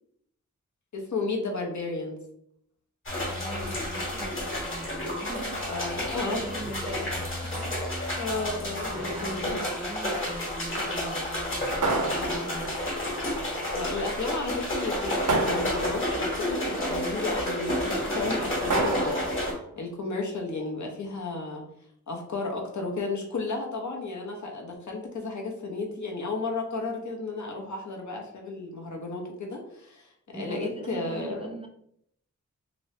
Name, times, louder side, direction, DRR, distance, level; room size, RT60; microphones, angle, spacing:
voice 1, 0.9-2.2 5.7-6.4 6.7-7.1 8.1-9.5 13.7-21.6 22.1-31.5, left 3 dB, 70° left, 1 dB, 0.9 m, -33 dB
sound 1, 3.1-19.5, left 1 dB, 40° left, 1.3 m, -30 dB
voice 2, 3.3-7.8 8.9-12.8 30.3-31.7, right 1 dB, 20° right, 3 dB, 0.4 m, -42 dB
sound 2, 11.8-12.9 15.3-16.3 18.7-19.6, right 3 dB, 80° right, 0.7 m, -29 dB
3.0 x 2.8 x 3.1 m, 0.70 s
wide cardioid pair, 105°, 30 cm